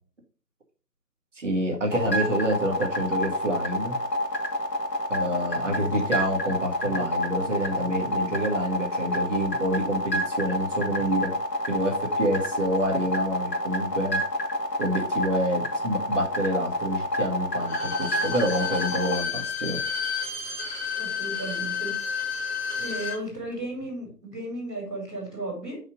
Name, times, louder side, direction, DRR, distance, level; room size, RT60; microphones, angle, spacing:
voice 1, 1.4-4.0 5.1-11.3 11.7-14.2 14.8-19.8, equal, 45° right, 0 dB, 2.0 m, -27 dB
sound 1, 1.9-19.2, left 1 dB, 75° left, 2.1 m, -28 dB
Bowed string instrument, 17.6-23.2 23.5-23.6, left 6 dB, 40° left, 2.2 m, -31 dB
voice 2, 21.0-21.9 22.4-22.5 22.8-25.8, right 1 dB, ahead, -18 dB, 1.7 m, -35 dB
5.7 x 5.6 x 5.0 m, 0.40 s
figure-of-eight pair, 165°, 49 cm